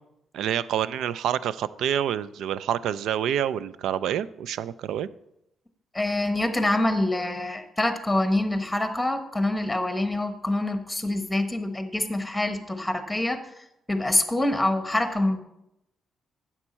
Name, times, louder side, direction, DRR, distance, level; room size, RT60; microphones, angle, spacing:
voice 1, 0.3-5.1, right 10 dB, 85° right, 17 dB, 0.3 m, -27 dB
voice 2, 5.9-13.4 13.9-15.4, left 1 dB, 10° left, 8 dB, 1.1 m, -25 dB
9.8 x 7.3 x 4.3 m, 0.84 s
cardioid pair, 100°, 0 cm